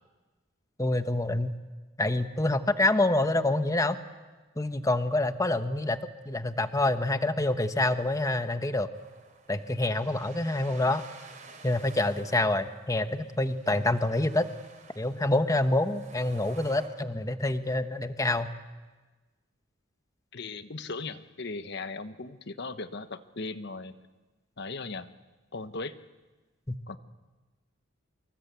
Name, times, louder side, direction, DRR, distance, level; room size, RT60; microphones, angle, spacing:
voice 1, 0.8-1.6 2.0-4.0 4.6-6.0 6.2-8.9 9.5-11.0 11.6-14.5 15.0-18.5 26.7-26.8, left 2 dB, 15° left, 9 dB, 1.1 m, -27 dB
sound 1, 8.9-16.9, right 4 dB, 40° right, 4.7 m, -52 dB
voice 2, 20.3-23.9 24.6-25.1 25.5-26.0 26.9-27.0, left 3 dB, 55° left, 11 dB, 1.2 m, -38 dB
27.5 x 25.5 x 8.3 m, 1.3 s
head